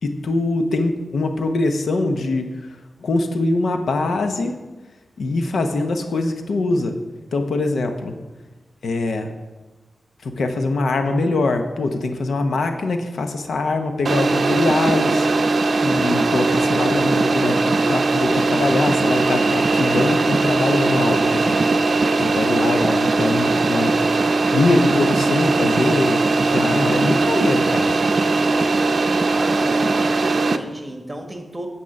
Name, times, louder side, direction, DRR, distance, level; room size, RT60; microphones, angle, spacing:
voice 1, 0.0-2.7 3.0-4.6 5.2-7.0 7.3-8.1 8.8-9.3 10.2-15.3 15.8-21.6 22.2-24.0 24.5-27.9, left 2 dB, 85° left, 6 dB, 0.8 m, -23 dB
sound 1, 14.0-30.6, right 3 dB, 60° right, 0.5 m, -19 dB
voice 2, 29.2-31.7, right 1 dB, 20° right, 4 dB, 1.5 m, -34 dB
8.7 x 7.2 x 5.3 m, 1.2 s
cardioid pair, 70°, 0 cm